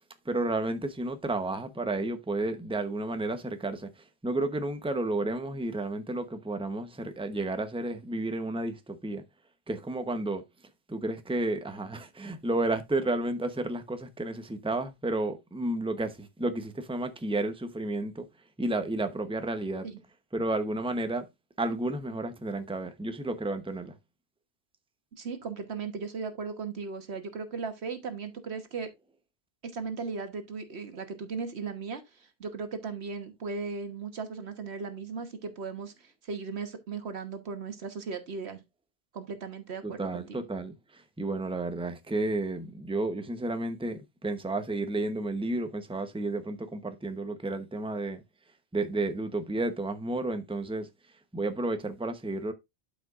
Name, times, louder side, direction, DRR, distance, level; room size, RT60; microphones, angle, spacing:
voice 1, 0.2-3.9 4.2-9.2 9.7-10.4 10.9-18.3 18.6-19.9 20.3-21.2 21.6-23.9 39.8-48.2 48.7-50.9 51.3-52.5, right 2 dB, 5° right, 0.9 m, -32 dB
voice 2, 25.1-28.9 29.6-38.6 39.1-40.4, right 5 dB, 85° right, 1.5 m, -37 dB
12.0 x 5.1 x 2.5 m
omnidirectional pair, 1.1 m